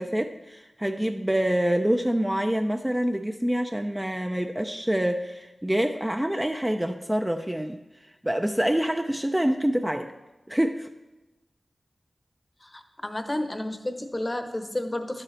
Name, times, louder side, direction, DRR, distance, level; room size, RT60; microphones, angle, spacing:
voice 1, 0.0-7.8 8.2-10.1 10.5-10.9, equal, 10° right, 5 dB, 0.4 m, -26 dB
voice 2, 12.6-15.2, left 1 dB, 25° left, 6 dB, 0.8 m, -31 dB
12.0 x 7.5 x 3.2 m, 1.0 s
wide cardioid pair, 70°, 0 cm